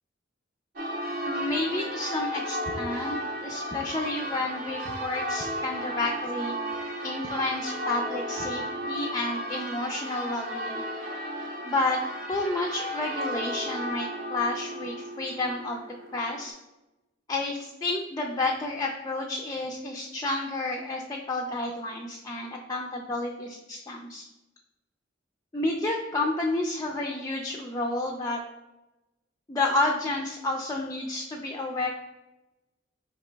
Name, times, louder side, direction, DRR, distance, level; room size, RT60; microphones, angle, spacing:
Church bell, 0.8-16.5, equal, 50° right, 0.6 m, -34 dB
voice 1, 1.2-6.5 7.0-10.8 11.7-12.0 12.3-15.8 16.1-16.5 17.3-24.2 25.5-28.4 29.5-31.9, left 2 dB, 20° left, 0 dB, 0.3 m, -30 dB
4.5 x 2.9 x 3.3 m, 1.0 s
head